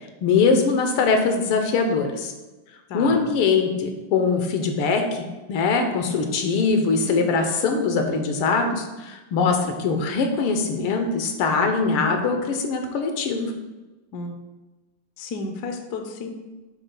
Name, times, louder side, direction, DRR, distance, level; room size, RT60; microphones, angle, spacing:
voice 1, 0.2-2.3 2.9-5.2 5.5-13.5, left 4 dB, 80° left, 5 dB, 1.7 m, -22 dB
voice 2, 2.9-3.3 14.1-14.3 15.2-16.3, left 3 dB, 65° left, 4 dB, 1.1 m, -32 dB
8.0 x 7.3 x 2.2 m, 1.1 s
omnidirectional pair, 2.3 m